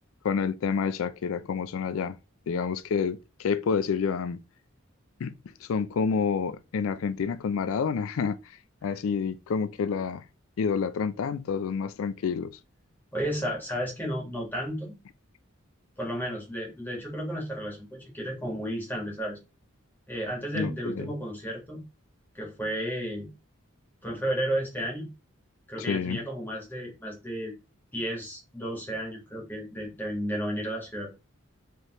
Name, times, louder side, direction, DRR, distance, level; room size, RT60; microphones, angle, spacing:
voice 1, 0.2-2.2 2.5-4.4 5.2-5.3 5.6-8.4 8.8-10.2 10.6-12.5 20.5-21.1 25.9-26.2, left 6 dB, 90° left, 0.4 m, -28 dB
voice 2, 13.1-15.0 16.0-19.4 20.1-21.8 22.3-23.3 24.0-25.1 25.7-27.5 27.9-31.1, equal, 10° left, 1.7 m, -33 dB
4.6 x 3.3 x 3.0 m
head